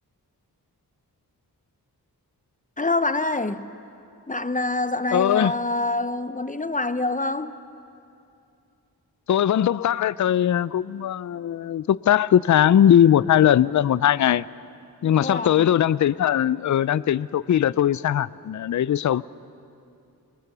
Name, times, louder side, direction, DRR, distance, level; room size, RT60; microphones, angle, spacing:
voice 1, 2.8-3.7 4.3-7.5 15.2-15.7, left 2 dB, 20° left, 0.9 m, -26 dB
voice 2, 5.1-5.5 9.3-14.4 15.0-19.2, left 10 dB, 50° left, 0.4 m, -20 dB
24.5 x 21.0 x 6.1 m
cardioid pair, 45°, 38 cm